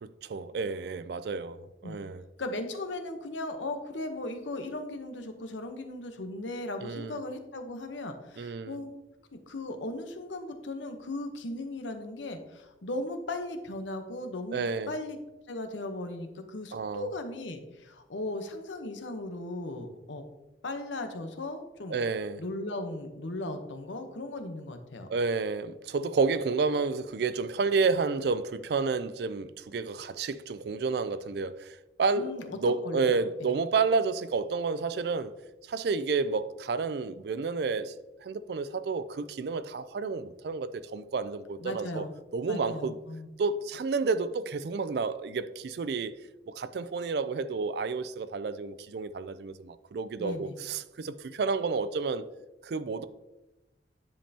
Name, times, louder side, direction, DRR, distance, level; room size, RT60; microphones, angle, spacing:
voice 1, 0.0-2.2 6.8-7.2 8.4-8.8 14.5-14.9 16.7-17.1 21.9-22.4 25.1-35.3 35.7-37.9 38.2-42.0 42.3-43.0 43.4-46.2 46.5-52.2 52.6-53.0, right 4 dB, 60° right, 0.3 m, -30 dB
voice 2, 2.4-8.9 9.3-15.2 15.5-20.2 20.6-22.0 22.4-25.1 32.2-32.6 32.8-33.6 41.6-42.1 42.5-43.3 50.2-50.5, left 2 dB, 90° left, 0.9 m, -37 dB
10.0 x 5.3 x 2.8 m
head